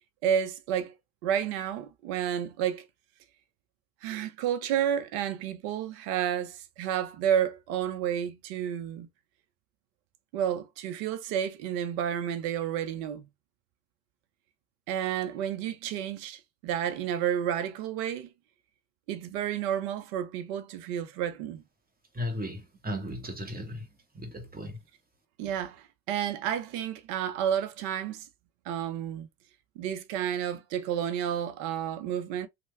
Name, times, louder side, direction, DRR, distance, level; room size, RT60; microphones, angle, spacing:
voice 1, 0.2-0.9 1.2-2.9 4.0-9.1 10.3-13.3 14.9-18.3 19.1-21.6 25.4-28.3 28.7-29.3 29.8-32.5, right 9 dB, 75° right, 0.8 m, -31 dB
voice 2, 22.1-23.9 24.1-24.8, left 1 dB, 20° right, 1.2 m, -36 dB
3.2 x 2.3 x 3.2 m
hypercardioid pair, 75°, 49 cm